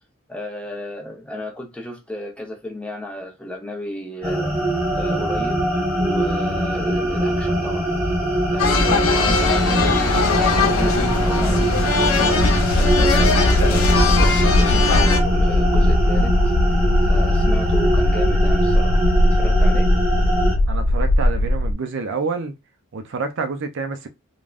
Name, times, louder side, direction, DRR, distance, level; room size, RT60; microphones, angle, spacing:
voice 1, 0.3-4.5 5.0-7.9 8.5-12.4 12.7-19.9, left 1 dB, 5° left, 0.6 m, -34 dB
sound 1, 4.2-20.6, right 1 dB, 10° right, 1.4 m, -22 dB
sound 2, 8.6-15.2, left 3 dB, 70° left, 0.7 m, -20 dB
sound 3, 12.4-21.7, left 1 dB, 50° left, 0.3 m, -19 dB
voice 2, 20.7-22.5 22.9-24.1, right 4 dB, 60° right, 0.5 m, -28 dB
3.3 x 2.2 x 2.4 m
head